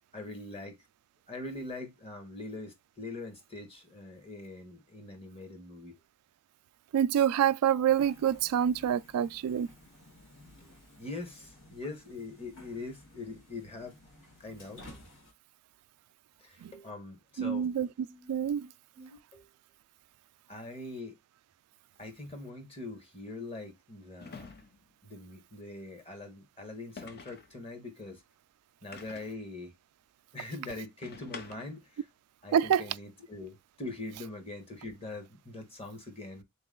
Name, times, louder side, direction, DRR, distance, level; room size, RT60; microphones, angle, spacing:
voice 1, 0.1-0.8 1.3-6.0 10.6-10.7 11.0-14.0 14.4-15.0 16.4-17.7 18.1-19.5 20.5-21.2 22.0-24.6 25.0-28.2 28.8-29.7 30.3-32.1 32.4-36.4, left 2 dB, 25° left, 1.2 m, -43 dB
voice 2, 6.9-9.7 16.6-16.7 17.4-17.9 18.3-18.7 32.5-32.8, right 9 dB, 85° right, 0.3 m, -26 dB
sound 1, 7.9-15.3, left 2 dB, 65° left, 1.7 m, -55 dB
sound 2, 22.0-22.2 24.2-24.9 27.0-27.6 28.9-29.5 31.0-31.9, left 4 dB, 45° left, 0.6 m, -47 dB
3.8 x 3.0 x 3.7 m
head